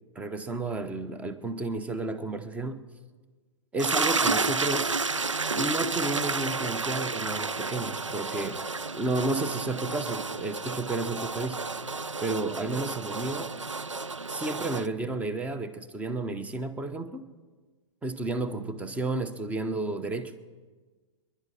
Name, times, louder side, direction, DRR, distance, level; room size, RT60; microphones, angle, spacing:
voice 1, 0.1-2.9 3.7-4.9 5.6-8.6 8.9-11.7 12.2-13.5 14.3-17.3 18.0-20.4, right 2 dB, 10° right, 0.9 m, -32 dB
sound 1, 3.8-14.9, right 4 dB, 90° right, 0.5 m, -31 dB
29.0 x 11.5 x 4.2 m
figure-of-eight pair, 110°, 16 cm